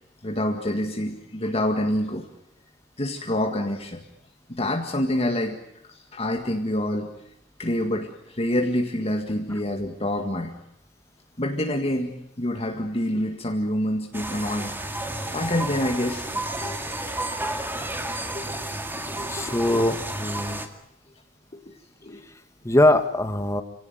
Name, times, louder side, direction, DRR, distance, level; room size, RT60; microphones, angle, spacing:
voice 1, 0.2-2.3 3.0-4.1 4.5-5.6 5.9-7.1 7.6-10.5 11.4-15.0 15.3-16.8 17.5-17.9 18.3-18.7 19.1-19.8 21.5-21.7 22.0-22.2, left 1 dB, 30° left, 3 dB, 2.0 m, -27 dB
sound 1, 14.1-20.7, right 1 dB, 10° right, 2.0 m, -31 dB
voice 2, 19.3-20.6 22.6-23.6, left 1 dB, 15° left, 8 dB, 1.8 m, -21 dB
26.5 x 17.5 x 9.3 m, 0.80 s
head